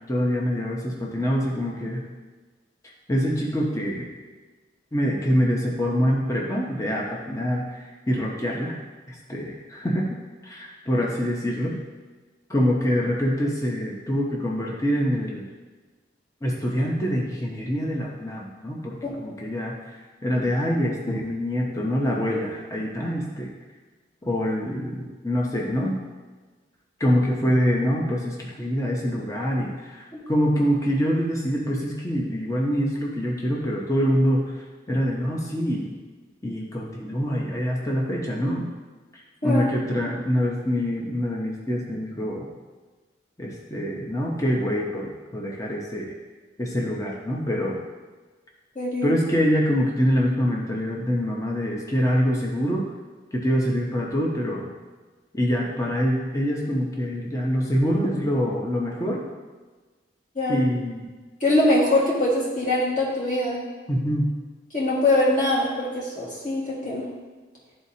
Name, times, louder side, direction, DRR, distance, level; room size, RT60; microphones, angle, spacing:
voice 1, 0.1-2.0 3.1-4.1 4.9-8.8 9.1-10.2 10.4-11.8 12.5-15.4 16.4-23.5 24.2-26.0 27.0-34.5 34.9-36.0 36.4-38.7 39.1-42.5 43.4-46.1 46.6-47.8 49.0-52.8 53.3-54.7 55.3-59.3 60.5-61.1 63.9-64.3, equal, 15° left, -2 dB, 0.8 m, -25 dB
voice 2, 48.7-49.1 60.3-60.6 61.4-63.6 64.7-67.1, left 1 dB, 45° left, -6 dB, 1.7 m, -23 dB
12.0 x 4.1 x 2.8 m, 1.3 s
head